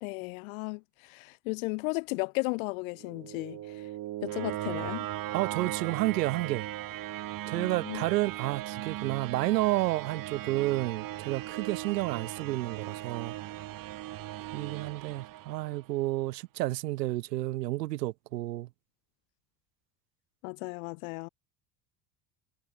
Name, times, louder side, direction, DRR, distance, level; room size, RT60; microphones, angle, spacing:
voice 1, 0.0-3.9 4.2-5.1 7.6-8.0 20.4-21.3, left 29 dB, 55° left, 0.5 m, -35 dB
sound 1, 2.9-16.0, right 14 dB, 40° right, 1.6 m, -38 dB
voice 2, 5.3-6.7 7.5-13.4 14.5-18.7, right 17 dB, 75° right, 0.9 m, -30 dB
figure-of-eight pair, 70°, 50 cm